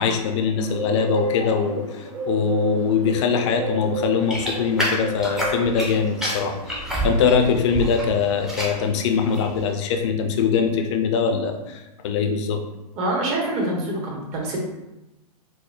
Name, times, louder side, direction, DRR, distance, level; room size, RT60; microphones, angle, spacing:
voice 1, 0.0-12.6, left 6 dB, 45° left, 5 dB, 0.5 m, -22 dB
Bird, 0.6-8.9, equal, 55° right, 1.4 m, -32 dB
sound 1, 4.3-5.9 6.2-8.0 8.3-8.8 9.3-9.6, equal, ahead, 0.5 m, -27 dB
voice 2, 13.0-14.6, right 1 dB, 30° right, -2 dB, 0.8 m, -25 dB
4.4 x 2.1 x 2.4 m, 0.98 s
hypercardioid pair, 130°, 20 cm